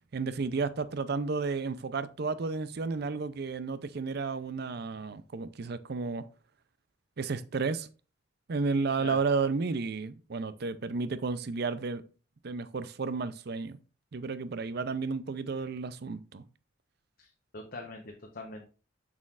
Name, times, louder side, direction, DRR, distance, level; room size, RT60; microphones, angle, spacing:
voice 1, 0.1-6.2 7.2-7.9 8.5-12.0 12.4-13.8 14.1-16.4, right 4 dB, 55° right, 0.5 m, -32 dB
voice 2, 17.2-18.6, left 2 dB, 50° left, 0.9 m, -43 dB
7.2 x 6.4 x 2.5 m
head